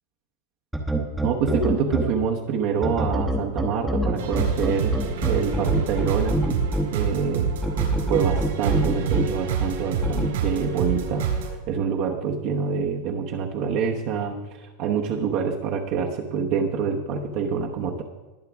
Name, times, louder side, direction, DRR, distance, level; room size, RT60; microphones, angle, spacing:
sound 1, 0.7-2.0 2.8-6.8 7.6-9.2 10.0-10.3, right 1 dB, ahead, 1.0 m, -24 dB
voice 1, 1.2-6.4 6.9-7.5 8.1-11.3 11.7-18.0, right 6 dB, 40° right, 0 dB, 1.0 m, -26 dB
sound 2, 4.2-11.5, right 6 dB, 85° right, 3.5 m, -27 dB
20.5 x 7.4 x 3.5 m, 1.2 s
supercardioid pair, 170°, 0 cm